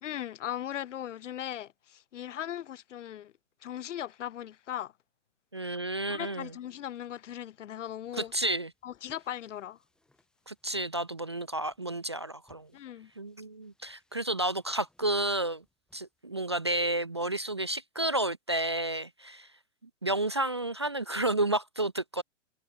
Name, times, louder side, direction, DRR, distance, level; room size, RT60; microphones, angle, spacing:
voice 1, 0.0-3.3 3.6-4.9 6.1-8.3 8.8-9.8 12.7-13.1, left 11 dB, 85° left, 0.9 m, -38 dB
voice 2, 5.5-6.5 8.2-8.7 10.5-12.7 13.2-15.6 15.9-19.5 20.0-22.2, right 1 dB, 25° right, 0.3 m, -31 dB
sound 1, 7.8-17.4, left 1 dB, ahead, 7.7 m, -74 dB
hypercardioid pair, 175°, 36 cm